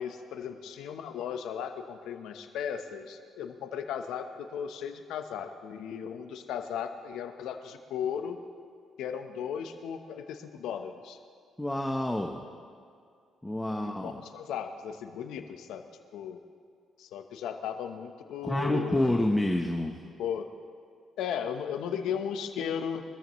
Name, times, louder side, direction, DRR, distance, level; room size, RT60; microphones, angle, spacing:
voice 1, 0.0-8.4 9.0-11.2 13.7-15.8 16.1-16.4 17.0-19.3 20.2-20.5 21.2-23.0, left 8 dB, 85° left, 7 dB, 1.0 m, -36 dB
voice 2, 11.6-12.5 13.4-14.2 18.4-19.9, left 1 dB, 10° left, 2 dB, 1.0 m, -28 dB
24.0 x 14.0 x 3.2 m, 2.3 s
cardioid pair, 90°, 0 cm